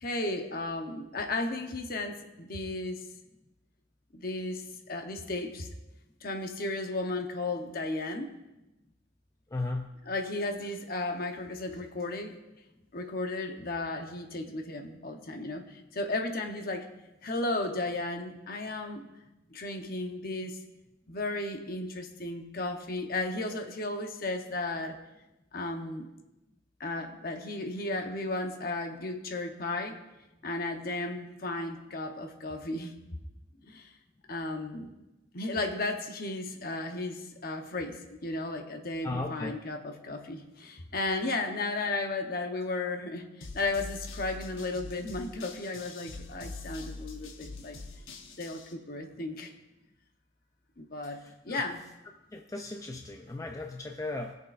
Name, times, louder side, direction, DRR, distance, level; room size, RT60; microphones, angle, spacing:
voice 1, 0.0-3.0 4.1-5.7 6.2-8.3 10.1-12.4 12.9-16.9 17.2-19.1 19.5-20.6 21.1-25.0 25.5-26.1 26.8-30.0 30.4-32.9 33.7-33.9 34.3-34.9 35.3-47.8 48.4-49.5 50.8-51.8, left 2 dB, 45° left, 4 dB, 0.9 m, -34 dB
voice 2, 9.5-9.9 39.0-39.6 51.0-51.6 52.3-54.3, left 2 dB, 15° left, 3 dB, 0.4 m, -36 dB
sound 1, 43.4-48.7, left 3 dB, 75° left, 1.0 m, -44 dB
18.5 x 6.4 x 2.5 m, 1.0 s
head